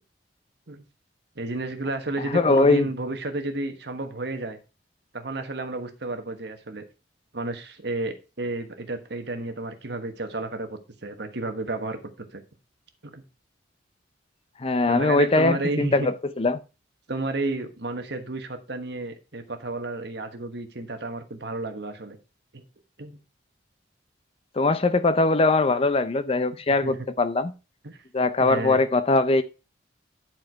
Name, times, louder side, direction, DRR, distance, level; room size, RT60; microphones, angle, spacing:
voice 1, 1.3-4.6 5.1-6.8 7.3-12.4 13.0-13.2 14.9-16.1 17.1-22.2 22.5-22.6 23.0-23.2 26.8-27.1 27.8-28.0 28.4-28.8, right 2 dB, 60° right, 1.3 m, -32 dB
voice 2, 2.3-2.9 14.6-16.6 24.6-27.5 28.1-29.4, left 3 dB, 30° left, 0.5 m, -21 dB
10.5 x 4.6 x 4.5 m
head